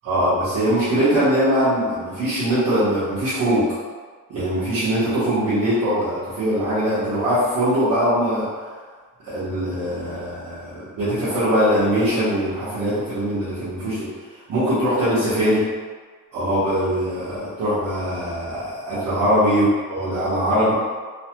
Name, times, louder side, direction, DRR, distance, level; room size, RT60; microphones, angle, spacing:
voice 1, 0.0-3.6 4.3-8.5 9.2-14.1 14.5-15.6 16.3-20.7, equal, 75° right, -13 dB, 1.2 m, -21 dB
3.2 x 2.1 x 2.9 m, 1.5 s
cardioid pair, 125°, 32 cm